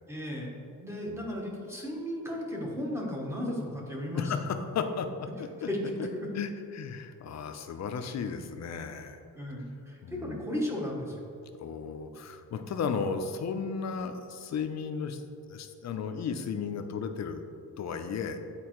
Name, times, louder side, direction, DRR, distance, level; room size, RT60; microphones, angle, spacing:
voice 1, 0.1-0.5 0.8-4.4 5.7-6.1 9.3-11.2, left 1 dB, 5° right, -2 dB, 0.8 m, -35 dB
voice 2, 1.1-1.4 4.1-5.7 6.0-6.1 6.3-9.2 10.0-10.5 11.6-15.2 15.5-17.4 17.8-18.4, left 6 dB, 50° left, 7 dB, 0.4 m, -34 dB
8.4 x 4.2 x 3.0 m, 2.5 s
wide cardioid pair, 175°, 37 cm